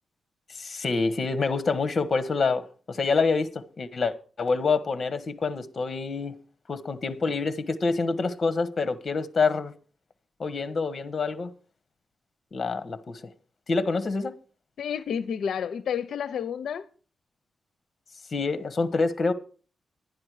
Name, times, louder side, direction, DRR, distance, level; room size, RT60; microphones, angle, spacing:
voice 1, 0.6-6.3 6.7-9.7 10.4-11.5 12.5-13.3 13.7-14.3 18.3-19.3, left 4 dB, 45° left, 1.3 m, -27 dB
voice 2, 14.8-16.9, left 7 dB, 80° left, 0.6 m, -30 dB
11.0 x 11.0 x 4.8 m
cardioid pair, 110°, 0 cm